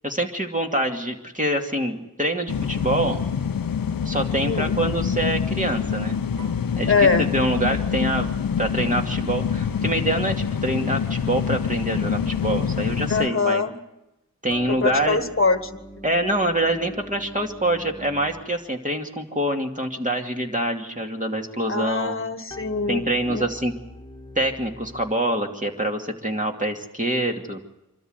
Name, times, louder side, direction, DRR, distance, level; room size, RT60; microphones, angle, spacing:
voice 1, 0.0-3.2 4.0-6.2 6.8-8.3 8.6-13.6 14.4-15.2 16.0-22.2 22.9-23.7 24.4-27.6, right 1 dB, 20° right, 2 dB, 2.5 m, -25 dB
sound 1, 2.5-13.3, left 7 dB, 75° left, 0.7 m, -26 dB
voice 2, 4.4-4.7 6.9-7.3 13.1-13.8 14.7-15.8 21.7-23.5, left 4 dB, 35° left, 9 dB, 1.5 m, -23 dB
sound 2, 14.5-18.8 22.5-25.1, left 1 dB, 15° left, 1.9 m, -43 dB
25.0 x 13.0 x 8.0 m, 0.93 s
wide cardioid pair, 40°, 35 cm